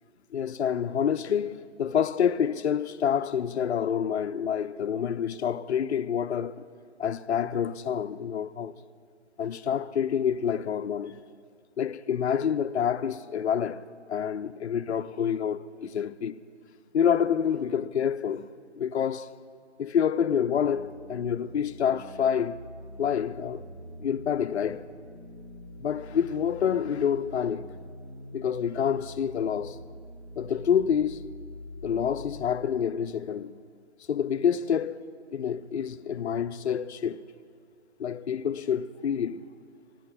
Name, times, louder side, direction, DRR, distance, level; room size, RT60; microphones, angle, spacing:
voice 1, 0.3-6.6 7.0-8.8 9.4-11.2 11.8-16.4 16.9-18.5 18.7-19.3 19.8-22.6 23.0-23.6 24.0-24.9 25.8-27.7 28.3-29.8 30.4-31.2 31.8-33.6 34.1-37.2 38.0-39.5, left 8 dB, 65° left, 0.5 m, -27 dB
sound 1, 20.6-32.6, left 1 dB, 20° right, 0.6 m, -44 dB
11.5 x 10.5 x 5.5 m
figure-of-eight pair, 160°, 36 cm